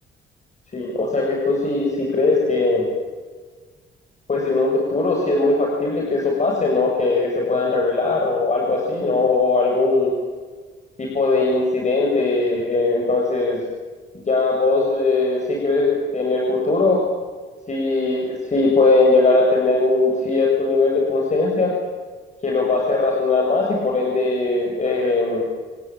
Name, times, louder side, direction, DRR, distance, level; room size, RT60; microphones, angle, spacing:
voice 1, 0.7-2.9 4.3-10.1 11.0-13.6 14.3-17.0 17.7-21.7 22.4-25.4, left 3 dB, 35° left, -1 dB, 7.5 m, -20 dB
29.0 x 19.0 x 9.1 m, 1.4 s
cardioid pair, 90°, 20 cm